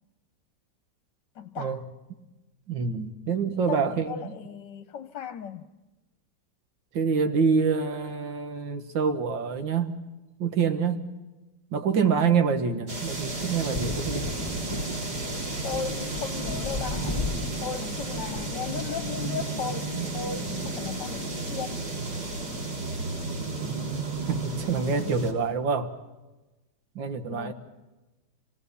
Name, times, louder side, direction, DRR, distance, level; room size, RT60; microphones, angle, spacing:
voice 1, 1.3-1.8 3.5-5.6 15.6-17.3 17.6-21.8 27.3-27.5, left 6 dB, 70° left, 1.5 m, -36 dB
voice 2, 2.7-4.3 6.9-10.0 10.4-11.1 11.7-14.3 24.3-25.9 27.0-27.5, right 5 dB, 80° right, 2.1 m, -26 dB
sound 1, 12.9-25.3, right 3 dB, 60° right, 3.6 m, -33 dB
Thunder, 13.3-23.1 23.4-24.5, left 2 dB, 15° left, 1.4 m, -38 dB
27.5 x 18.0 x 7.0 m
omnidirectional pair, 2.0 m